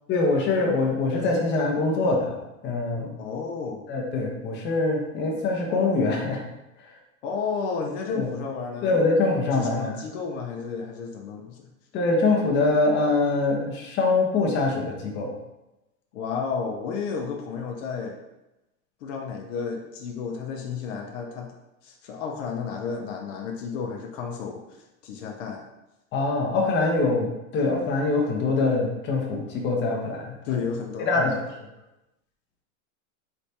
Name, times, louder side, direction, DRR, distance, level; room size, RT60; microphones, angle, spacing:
voice 1, 0.1-3.2 3.9-6.4 6.8-6.9 8.1-8.3 8.8-9.9 11.9-15.4 26.1-30.6 31.1-31.3, left 3 dB, 30° left, -1 dB, 0.7 m, -24 dB
voice 2, 3.2-3.8 7.2-9.0 9.6-11.7 16.1-18.2 19.0-21.5 21.8-25.6 30.4-31.4, left 5 dB, 65° left, 1 dB, 0.7 m, -32 dB
3.3 x 3.1 x 2.8 m, 0.95 s
supercardioid pair, 125°, 40 cm